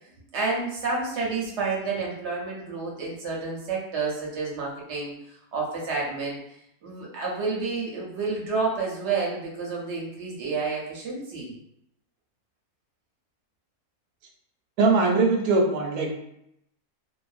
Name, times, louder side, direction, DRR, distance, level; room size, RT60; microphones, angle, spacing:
voice 1, 0.3-6.4 6.8-11.5, right 4 dB, 60° right, -3 dB, 0.8 m, -30 dB
voice 2, 14.8-16.1, right 3 dB, 85° right, 1 dB, 1.1 m, -21 dB
2.5 x 2.1 x 2.4 m, 0.77 s
omnidirectional pair, 1.6 m